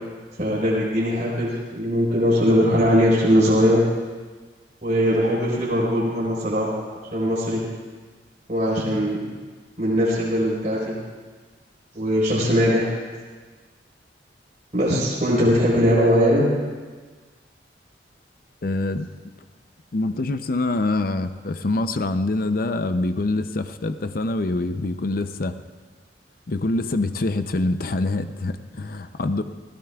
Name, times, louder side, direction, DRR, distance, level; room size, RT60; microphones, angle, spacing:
voice 1, 0.4-3.8 4.8-6.8 7.1-7.6 8.5-9.2 9.8-10.9 11.9-12.9 14.7-16.4, equal, 45° right, -6 dB, 4.4 m, -20 dB
voice 2, 18.6-19.1 19.9-25.5 26.5-29.4, left 2 dB, 55° left, 9 dB, 0.6 m, -25 dB
28.5 x 16.5 x 2.4 m, 1.4 s
head